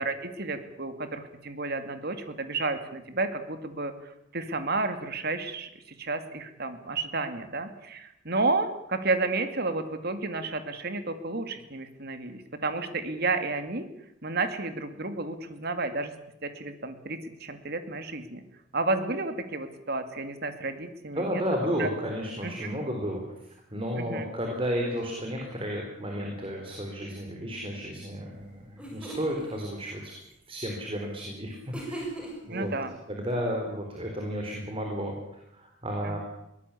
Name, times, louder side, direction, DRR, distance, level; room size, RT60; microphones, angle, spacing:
voice 1, 0.0-13.9 14.2-16.1 16.4-18.4 18.7-21.4 21.8-21.9 22.4-22.8 23.9-24.2 32.5-32.9 36.0-36.2, right 3 dB, 55° right, 9 dB, 2.5 m, -31 dB
voice 2, 21.1-30.1 30.5-32.0 32.5-32.7 33.1-35.1 35.5-36.2, equal, 30° right, 1 dB, 4.3 m, -32 dB
sound 1, 28.4-28.5 28.8-29.4 31.7-32.6, right 1 dB, 5° right, 6.6 m, -38 dB
22.5 x 18.5 x 8.6 m, 0.84 s
head